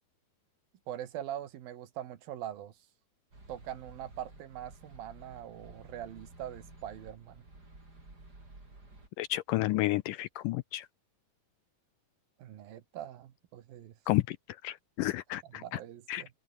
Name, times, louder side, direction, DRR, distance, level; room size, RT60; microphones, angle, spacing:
voice 1, 0.9-2.8 3.5-7.4 12.4-13.9 15.5-16.3, right 11 dB, 75° right, 3.4 m, -42 dB
sound 1, 3.3-9.1, right 2 dB, 25° right, 7.1 m, -53 dB
voice 2, 9.2-10.9 14.1-15.8 16.1-16.2, left 17 dB, 80° left, 1.9 m, -31 dB
open air
omnidirectional pair, 4.3 m